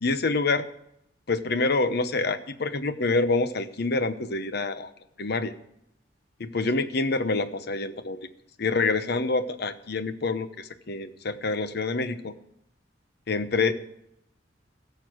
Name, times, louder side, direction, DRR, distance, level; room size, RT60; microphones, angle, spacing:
voice 1, 0.0-0.7 1.3-4.9 5.2-5.5 6.4-8.2 8.6-12.3 13.3-13.7, left 3 dB, 60° left, 11 dB, 0.9 m, -26 dB
16.5 x 6.9 x 6.2 m, 0.77 s
head